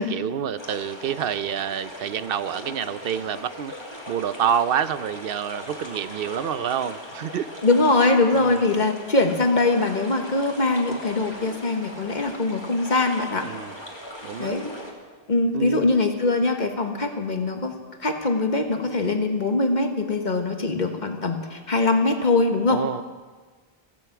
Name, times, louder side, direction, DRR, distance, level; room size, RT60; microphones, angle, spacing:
voice 1, 0.0-3.7 4.1-7.5 8.3-8.8 13.4-13.7 14.2-14.5 15.5-15.9 22.7-23.0, right 8 dB, 65° right, 14 dB, 0.8 m, -28 dB
sound 1, 0.6-14.9, equal, 25° left, 2.7 m, -39 dB
voice 2, 7.6-13.5 14.4-14.6 15.3-17.7 18.0-22.8, left 3 dB, 45° left, 5 dB, 1.6 m, -22 dB
16.0 x 15.0 x 6.0 m, 1.4 s
omnidirectional pair, 1.0 m